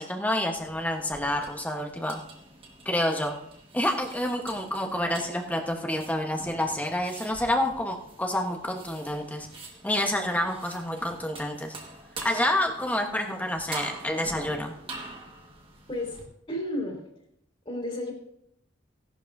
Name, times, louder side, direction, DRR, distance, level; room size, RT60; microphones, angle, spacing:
voice 1, 0.0-2.2 2.8-3.3 3.7-9.5 9.8-11.7 12.2-14.7, left 1 dB, 10° left, 3 dB, 1.0 m, -28 dB
sound 1, 0.5-16.2, right 3 dB, 25° right, 1.5 m, -45 dB
voice 2, 15.9-17.0 17.6-18.1, left 1 dB, 25° left, -1 dB, 3.0 m, -32 dB
16.5 x 11.0 x 2.6 m, 0.75 s
head